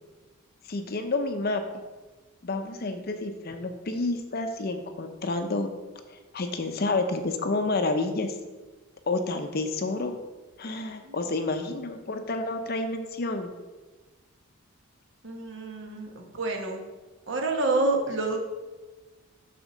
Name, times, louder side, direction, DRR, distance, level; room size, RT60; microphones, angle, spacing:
voice 1, 0.7-1.6 2.4-5.7 6.1-8.3 9.1-10.2 10.6-13.5, left 2 dB, 45° left, 7 dB, 0.6 m, -29 dB
voice 2, 15.2-16.8 17.3-18.4, right 2 dB, 55° right, 2 dB, 1.1 m, -28 dB
6.4 x 4.3 x 6.1 m, 1.2 s
head